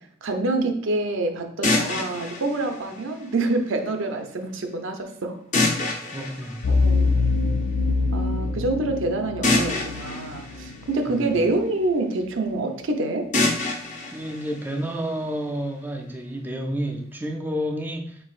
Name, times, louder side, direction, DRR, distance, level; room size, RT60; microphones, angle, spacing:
voice 1, 0.2-5.4 6.7-7.1 8.1-13.3, right 2 dB, 85° right, 0.6 m, -26 dB
sound 1, 1.6-3.6 5.5-7.5 9.4-11.6 13.3-15.4, left 2 dB, 40° left, 0.7 m, -27 dB
voice 2, 5.6-6.8 11.1-11.3 14.1-18.2, equal, 10° right, 0.3 m, -30 dB
sound 2, 6.6-11.4, left 3 dB, 80° left, 0.3 m, -25 dB
4.6 x 3.9 x 2.4 m
head